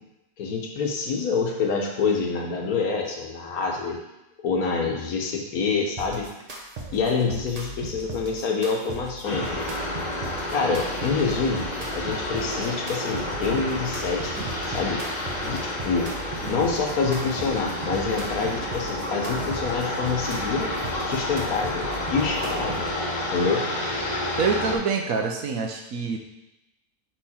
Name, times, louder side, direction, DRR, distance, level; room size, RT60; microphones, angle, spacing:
voice 1, 0.4-4.0 4.4-6.3 6.9-9.7 10.5-11.7 11.9-14.3 14.6-15.0 15.4-16.1 16.5-20.7 21.1-22.9 23.3-23.6, left 4 dB, 70° left, 1 dB, 1.4 m, -26 dB
sound 1, 6.0-23.0, right 2 dB, 35° right, 0.6 m, -38 dB
sound 2, 9.2-24.8, left 1 dB, 35° left, 0.8 m, -30 dB
sound 3, 13.4-13.7 14.3-14.6 15.4-15.8 16.3-16.7 17.3-17.7 18.3-18.6 19.3-19.6, right 3 dB, 85° right, 1.5 m, -40 dB
voice 2, 24.4-26.2, right 5 dB, 65° right, 3 dB, 1.1 m, -25 dB
5.5 x 4.6 x 4.2 m, 0.93 s
omnidirectional pair, 1.6 m